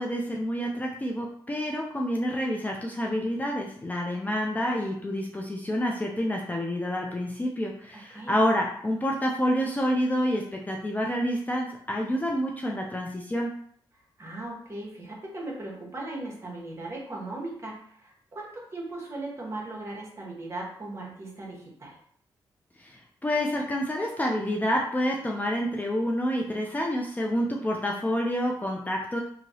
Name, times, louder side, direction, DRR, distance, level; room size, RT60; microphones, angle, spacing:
voice 1, 0.0-13.5 22.8-29.2, equal, 20° left, -1 dB, 0.4 m, -28 dB
voice 2, 14.2-22.0, right 2 dB, 30° right, -3 dB, 1.2 m, -38 dB
2.9 x 2.7 x 2.7 m, 0.62 s
cardioid pair, 80°, 9 cm